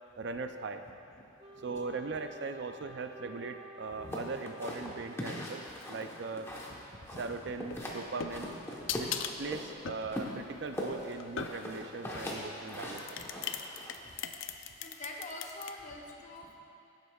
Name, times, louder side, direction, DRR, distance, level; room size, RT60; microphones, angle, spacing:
voice 1, 0.2-0.8 1.6-6.5 7.2-8.6 9.0-13.2, right 4 dB, 60° right, 7 dB, 0.4 m, -39 dB
Wind instrument woodwind instrument, 1.4-6.0, equal, 25° right, 1.0 m, -51 dB
sound 1, 4.1-6.8 7.1-8.0 8.3-9.7 10.1-13.9, left 1 dB, 15° left, 1.0 m, -40 dB
sound 2, 7.6-11.9 12.7-15.7, left 7 dB, 80° left, 0.5 m, -40 dB
voice 2, 14.8-16.6, left 1 dB, 40° left, 0 dB, 0.9 m, -44 dB
16.0 x 7.9 x 2.3 m, 2.7 s
head